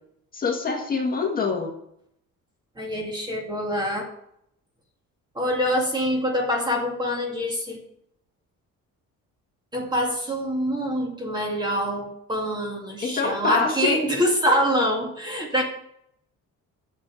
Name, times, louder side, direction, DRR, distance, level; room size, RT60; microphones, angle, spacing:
voice 1, 0.3-1.7 13.0-14.0, left 5 dB, 25° left, 0 dB, 1.8 m, -25 dB
voice 2, 2.8-4.1 5.4-7.8 9.7-15.6, equal, 15° right, 1 dB, 2.1 m, -25 dB
7.7 x 7.4 x 8.4 m, 0.72 s
cardioid pair, 165°, 32 cm